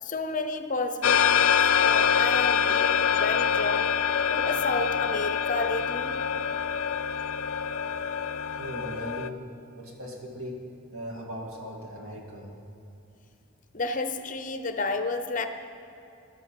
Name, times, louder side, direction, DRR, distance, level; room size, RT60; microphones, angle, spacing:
voice 1, 0.0-3.9 4.3-6.2 13.7-15.5, left 3 dB, 40° left, 8 dB, 0.7 m, -31 dB
sound 1, 1.0-9.3, left 7 dB, 80° left, 0.5 m, -25 dB
voice 2, 8.6-9.4 9.8-10.7 10.9-12.5, equal, 85° right, 0 dB, 2.4 m, -38 dB
13.0 x 9.9 x 7.5 m, 2.7 s
head